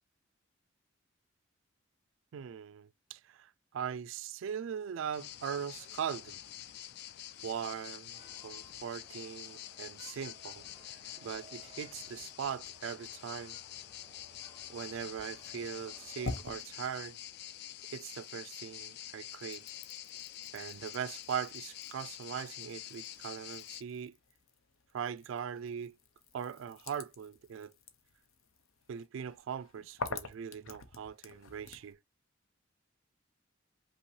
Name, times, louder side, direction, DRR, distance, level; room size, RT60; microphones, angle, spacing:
voice 1, 2.3-6.4 7.4-13.6 14.7-17.2 17.9-19.7 20.5-24.1 24.9-26.0 26.3-27.7 28.9-32.0, right 8 dB, 75° right, 0.3 m, -40 dB
sound 1, 5.1-23.8, left 12 dB, 55° left, 0.3 m, -47 dB
sound 2, 8.1-16.4, right 1 dB, 15° left, 2.2 m, -61 dB
sound 3, 15.7-18.3 18.7-31.9, left 3 dB, 90° left, 0.7 m, -48 dB
5.4 x 2.9 x 3.1 m
head